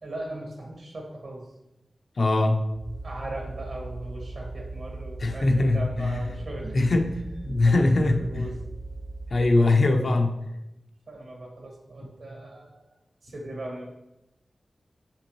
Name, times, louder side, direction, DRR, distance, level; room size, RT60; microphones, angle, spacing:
voice 1, 0.0-1.5 3.0-6.8 7.7-8.5 11.1-12.8 13.2-13.9, right 1 dB, 75° right, 0 dB, 1.7 m, -38 dB
voice 2, 2.2-2.6 5.2-5.8 6.7-7.1 7.4-8.4 9.3-10.3, left 2 dB, 65° left, 4 dB, 0.7 m, -21 dB
sound 1, 2.7-9.6, right 2 dB, 30° right, 0.5 m, -38 dB
6.0 x 5.7 x 3.0 m, 0.90 s
wide cardioid pair, 85°, 0 cm